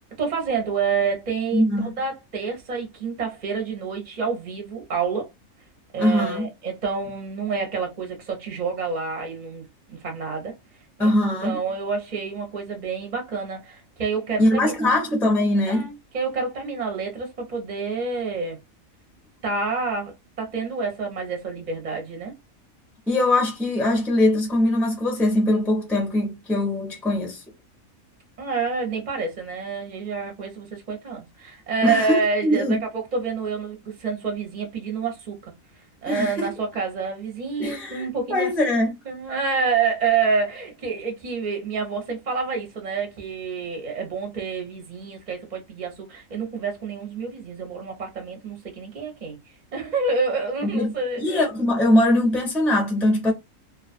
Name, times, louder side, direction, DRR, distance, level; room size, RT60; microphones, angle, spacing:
voice 1, 0.2-5.3 5.9-10.5 11.0-11.1 11.4-15.1 15.7-18.6 19.4-22.3 28.4-35.5 36.0-38.8 39.1-51.4, right 5 dB, 40° right, 0.7 m, -28 dB
voice 2, 1.5-2.0 6.0-6.5 11.0-11.6 14.4-15.8 23.1-27.4 31.8-32.8 36.1-36.5 37.6-38.9 50.6-50.9 51.2-53.3, left 1 dB, 5° left, 0.4 m, -21 dB
2.3 x 2.3 x 2.5 m
omnidirectional pair, 1.4 m